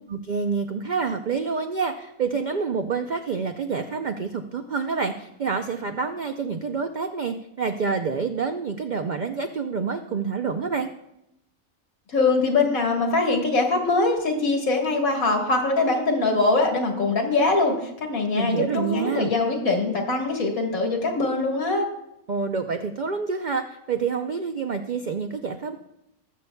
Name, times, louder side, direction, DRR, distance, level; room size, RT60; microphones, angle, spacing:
voice 1, 0.1-10.9 18.4-19.3 22.3-25.8, right 5 dB, 75° right, 6 dB, 0.4 m, -27 dB
voice 2, 12.1-21.9, left 3 dB, 75° left, 2 dB, 1.9 m, -22 dB
20.0 x 6.9 x 2.2 m, 0.83 s
omnidirectional pair, 1.5 m